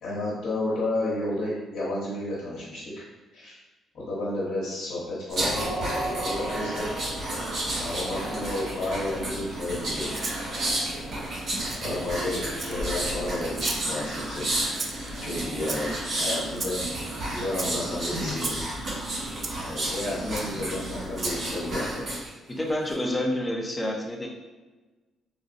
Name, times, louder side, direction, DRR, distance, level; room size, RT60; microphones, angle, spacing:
voice 1, 0.0-3.0 3.3-3.6 3.9-5.7 6.0-6.9 7.8-10.2 11.0-11.3 11.8-14.5 15.2-16.8 17.3-18.6 19.6-22.1, left 2 dB, 70° left, -9 dB, 1.0 m, -32 dB
sound 1, 5.3-22.3 22.7-22.9, right 1 dB, 55° right, 1.4 m, -31 dB
Rattle (instrument), 10.1-10.4 11.7-11.8 12.5-13.0 13.5-13.9 14.8-15.1 15.6-16.1 16.5-16.8 17.5-17.7 18.4-18.6 19.4-19.5 20.3-20.5 21.1-21.4, right 3 dB, 35° right, 0.4 m, -33 dB
voice 2, 22.5-24.3, left 1 dB, 15° left, 0 dB, 0.6 m, -28 dB
3.8 x 2.2 x 2.5 m, 1.2 s
cardioid pair, 90°, 0 cm